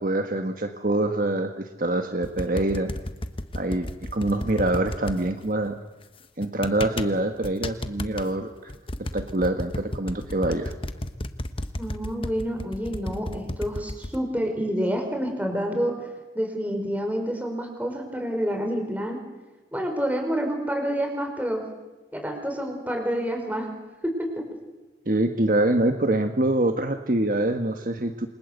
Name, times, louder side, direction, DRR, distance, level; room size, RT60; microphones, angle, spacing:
voice 1, 0.0-2.9 3.5-5.8 6.4-8.7 9.1-10.7 25.1-28.3, right 1 dB, 50° right, 6 dB, 1.5 m, -25 dB
sound 1, 2.2-5.2 6.4-7.1 7.4-8.3 8.7-14.2, left 1 dB, 30° left, 1.3 m, -32 dB
voice 2, 11.8-16.0 16.3-19.2 19.7-21.6 22.1-23.7 24.0-24.4, equal, 10° right, 4 dB, 5.3 m, -28 dB
28.5 x 25.0 x 8.2 m, 1.2 s
head